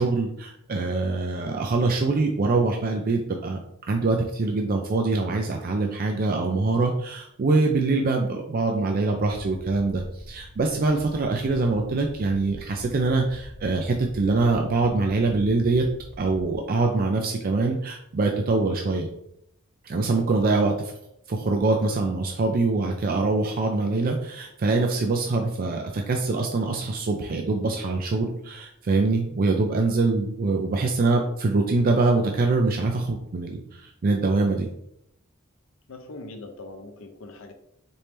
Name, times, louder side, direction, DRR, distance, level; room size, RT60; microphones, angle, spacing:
voice 1, 0.0-15.9 16.2-19.1 19.8-20.7 21.3-34.7, right 3 dB, 45° right, 3 dB, 0.4 m, -24 dB
sound 1, 9.4-16.6, equal, 90° left, 1.0 m, -44 dB
voice 2, 35.9-37.5, left 2 dB, 65° left, 5 dB, 0.6 m, -41 dB
4.3 x 3.1 x 3.4 m, 0.74 s
head